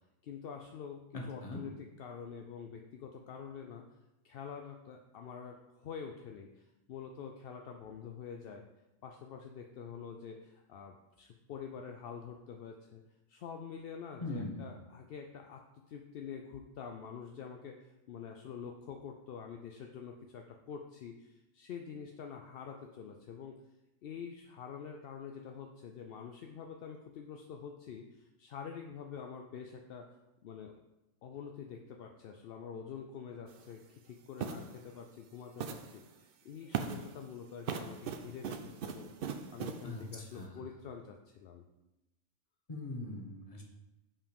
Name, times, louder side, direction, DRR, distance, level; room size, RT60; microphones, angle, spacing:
voice 1, 0.2-3.8 4.2-8.6 9.0-13.0 13.3-15.6 15.9-23.5 24.0-30.2 30.4-30.7 31.2-41.6, left 7 dB, 65° left, 3 dB, 0.6 m, -46 dB
voice 2, 1.1-1.6 14.2-14.7 39.8-40.6 42.7-43.6, left 2 dB, 30° left, 0 dB, 1.2 m, -41 dB
sound 1, 33.5-33.6 34.4-34.7 35.6-36.0 36.7-37.1 37.6-39.8, right 7 dB, 60° right, 0.6 m, -39 dB
5.7 x 4.9 x 5.2 m, 0.99 s
omnidirectional pair, 1.4 m